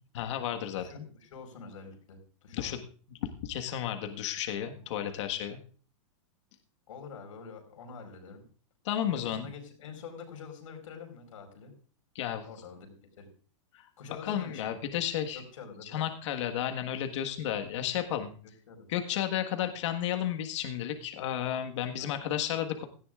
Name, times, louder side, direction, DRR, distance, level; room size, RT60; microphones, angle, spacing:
voice 1, 0.1-1.0 2.5-2.8 3.1-5.6 8.8-9.5 12.1-12.4 13.7-13.8 14.2-15.4 15.8-18.3 18.9-22.9, left 10 dB, 65° left, 5 dB, 1.6 m, -32 dB
voice 2, 0.7-2.8 4.7-5.2 6.9-8.5 9.1-11.7 12.4-13.3 14.0-14.7 15.3-16.0 18.4-18.9 22.0-22.2, left 5 dB, 85° left, 5 dB, 4.6 m, -47 dB
17.0 x 14.0 x 2.5 m, 0.41 s
supercardioid pair, 150°, 17 cm